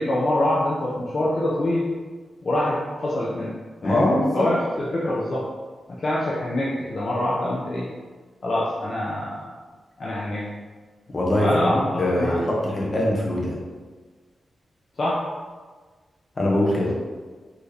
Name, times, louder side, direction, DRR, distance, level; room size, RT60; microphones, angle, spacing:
voice 1, 0.0-1.9 2.4-3.5 3.8-5.4 5.9-7.9 8.4-9.4 10.0-10.5 11.4-12.4 15.0-15.2 16.8-16.9, left 1 dB, 45° left, -6 dB, 0.6 m, -25 dB
voice 2, 3.8-4.5 11.1-11.6 12.0-13.6 16.4-16.9, left 1 dB, 30° left, -3 dB, 1.0 m, -22 dB
4.3 x 2.9 x 3.3 m, 1.4 s
wide cardioid pair, 125°, 0 cm